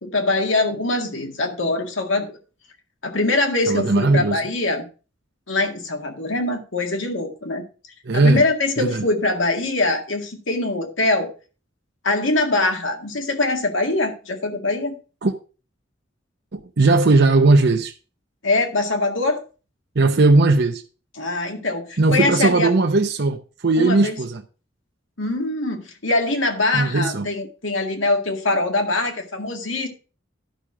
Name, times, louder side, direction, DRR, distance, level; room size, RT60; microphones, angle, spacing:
voice 1, 0.0-2.4 3.0-4.9 5.5-7.6 8.1-11.3 12.0-14.9 18.4-19.4 21.2-22.7 23.8-24.2 25.2-29.9, left 2 dB, 80° left, 2.0 m, -23 dB
voice 2, 3.7-4.4 8.0-8.4 8.8-9.1 15.2-15.3 16.5-17.9 20.0-20.8 22.0-24.4 26.7-27.3, right 3 dB, 60° right, 0.7 m, -18 dB
12.0 x 6.1 x 4.9 m
head